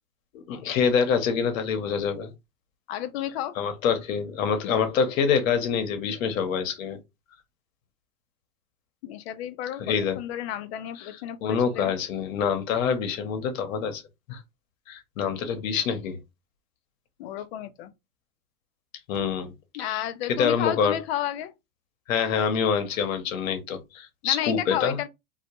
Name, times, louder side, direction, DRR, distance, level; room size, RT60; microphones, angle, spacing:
voice 1, 0.3-2.3 3.6-7.0 9.9-10.2 11.0-11.1 11.4-14.0 14.3-14.4 14.9-16.2 19.1-19.5 19.8-20.0 20.3-21.0 22.1-25.0, left 6 dB, 65° left, 0.8 m, -26 dB
voice 2, 2.9-3.5 9.0-11.9 17.2-17.9 19.7-21.5 24.2-25.1, left 11 dB, 50° left, 0.4 m, -32 dB
2.2 x 2.1 x 2.9 m
hypercardioid pair, 120°, 43 cm